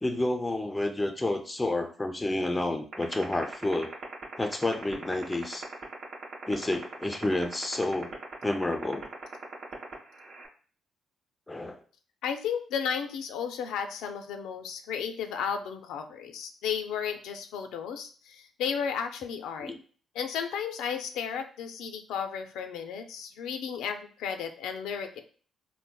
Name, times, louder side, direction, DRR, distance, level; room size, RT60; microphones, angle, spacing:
voice 1, 0.0-4.0 4.4-5.7 6.5-8.1 8.4-9.1 11.5-11.8 19.6-19.8, left 2 dB, 15° left, 6 dB, 0.4 m, -30 dB
sound 1, 2.9-10.5, right 6 dB, 65° right, 0.9 m, -39 dB
voice 2, 12.2-19.7 20.2-25.2, left 7 dB, 90° left, 6 dB, 0.3 m, -34 dB
3.8 x 2.1 x 2.2 m, 0.41 s
cardioid pair, 90°, 0 cm